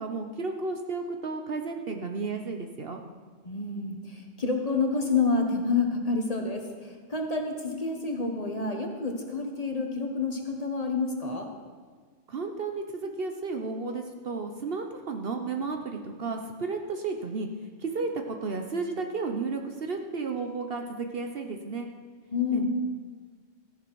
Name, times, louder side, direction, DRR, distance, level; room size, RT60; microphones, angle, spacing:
voice 1, 0.0-3.0 12.3-17.5 17.8-21.9 22.5-22.7, right 4 dB, 55° right, 5 dB, 0.9 m, -33 dB
voice 2, 3.4-11.5 22.3-22.7, left 4 dB, 30° left, 3 dB, 1.1 m, -28 dB
14.5 x 10.0 x 4.6 m, 1.6 s
omnidirectional pair, 1.3 m